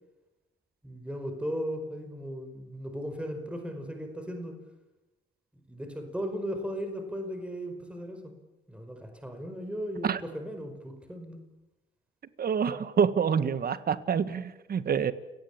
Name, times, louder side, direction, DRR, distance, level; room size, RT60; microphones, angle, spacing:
voice 1, 0.8-4.5 5.5-8.3 8.7-11.4, equal, 5° right, 6 dB, 5.0 m, -36 dB
voice 2, 12.4-15.1, right 7 dB, 50° right, 13 dB, 1.7 m, -27 dB
30.0 x 18.5 x 8.8 m, 1.0 s
cardioid pair, 90°, 20 cm